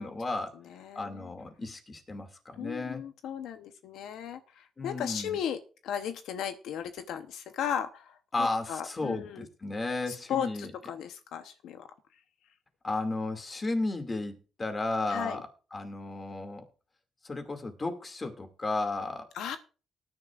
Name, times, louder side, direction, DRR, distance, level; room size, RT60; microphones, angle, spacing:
voice 1, 0.0-0.6 0.9-3.0 4.8-5.4 8.3-10.7 12.8-14.3 14.6-16.7 17.2-19.3, left 2 dB, 30° left, 6 dB, 2.4 m, -34 dB
voice 2, 0.7-1.3 2.6-9.5 10.1-11.9 15.1-15.4 19.3-19.6, left 9 dB, 85° left, 9 dB, 0.9 m, -36 dB
18.5 x 10.5 x 2.5 m, 0.36 s
cardioid pair, 90°, 0 cm